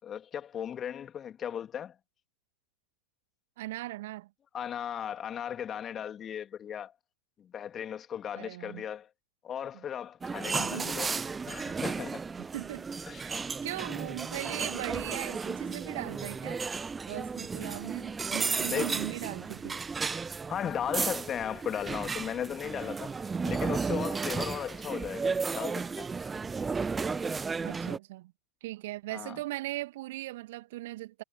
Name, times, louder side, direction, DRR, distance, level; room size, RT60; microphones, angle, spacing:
voice 1, 0.0-1.9 4.5-6.9 7.4-9.1 9.4-11.1 11.5-12.2 13.1-13.2 18.7-19.0 20.5-23.1 23.4-26.1 29.1-29.4, left 9 dB, 25° left, 3.2 m, -36 dB
voice 2, 3.6-4.3 8.4-8.8 10.6-10.9 12.5-12.9 13.2-16.6 17.1-19.8 27.6-28.3 28.6-31.2, right 17 dB, 55° right, 2.2 m, -39 dB
sound 1, 10.2-28.0, right 5 dB, 15° right, 0.9 m, -34 dB
figure-of-eight pair, 90°, 0 cm